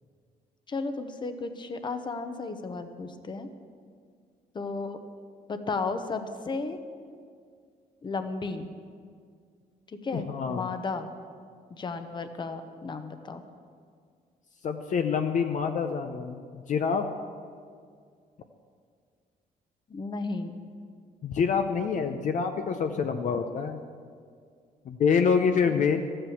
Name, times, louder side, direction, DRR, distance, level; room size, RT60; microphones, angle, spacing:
voice 1, 0.7-3.5 4.5-5.0 5.5-6.8 8.0-8.7 9.9-11.1 11.7-13.4 19.9-20.6 25.6-25.8, left 3 dB, 30° left, 8 dB, 0.9 m, -34 dB
voice 2, 10.1-10.7 14.6-17.1 21.2-23.8 24.8-26.0, left 6 dB, 55° left, 6 dB, 0.7 m, -26 dB
14.0 x 8.8 x 7.2 m, 2.1 s
cardioid pair, 145°, 16 cm